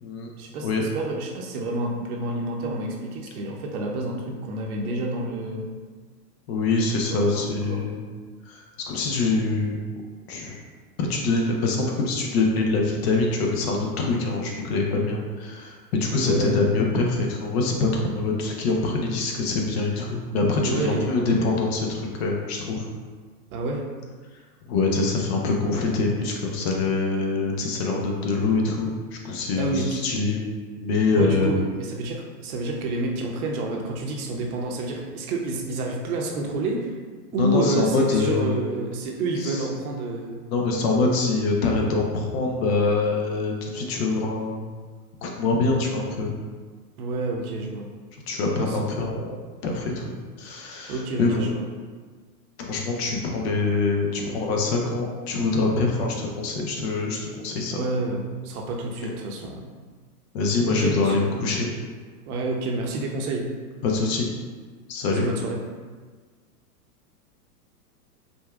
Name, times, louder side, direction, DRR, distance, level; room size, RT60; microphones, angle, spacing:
voice 1, 0.4-0.7 0.9-5.7 7.0-7.9 16.2-16.6 20.6-21.5 23.5-23.8 29.6-30.0 31.1-36.9 37.3-40.4 47.0-47.9 48.5-49.1 50.9-51.7 57.7-59.7 60.6-61.3 62.3-63.5 65.1-65.6, right 2 dB, 60° right, 0 dB, 0.8 m, -29 dB
voice 2, 6.5-8.1 8.5-9.8 10.3-10.6 11.0-22.9 24.6-28.9 29.2-30.4 30.8-31.5 37.4-38.5 39.4-39.6 40.5-44.7 45.2-46.3 48.3-49.4 49.6-50.0 50.4-51.5 52.6-57.8 59.0-59.1 60.3-61.7 63.8-64.3 64.9-65.2, left 3 dB, 40° left, 0 dB, 0.6 m, -24 dB
5.1 x 2.2 x 2.3 m, 1.5 s
hypercardioid pair, 130°, 48 cm